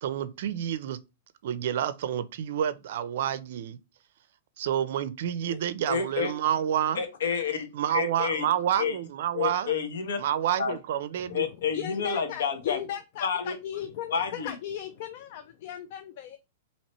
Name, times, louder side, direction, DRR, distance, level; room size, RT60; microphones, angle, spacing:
voice 1, 0.0-1.0 1.4-3.8 4.6-7.0 7.7-9.7 10.2-11.4, right 10 dB, 60° right, 0.5 m, -29 dB
voice 2, 5.9-6.3 6.9-8.5 8.8-9.0 9.3-10.2 10.6-10.8 11.3-12.8 13.2-13.5 14.1-14.5, left 6 dB, 80° left, 1.1 m, -29 dB
voice 3, 11.2-16.4, left 10 dB, 45° left, 0.4 m, -37 dB
4.3 x 2.9 x 3.0 m
hypercardioid pair, 155°, 0 cm